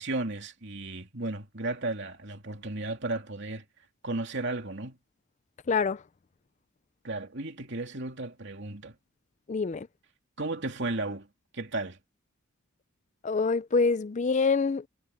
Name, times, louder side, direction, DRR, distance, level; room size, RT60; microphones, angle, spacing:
voice 1, 0.0-3.6 4.0-5.0 7.0-9.0 10.4-11.3 11.5-12.0, right 2 dB, 55° right, 3.0 m, -34 dB
voice 2, 5.7-6.0 9.5-9.9 13.2-14.9, left 4 dB, 35° left, 0.4 m, -26 dB
head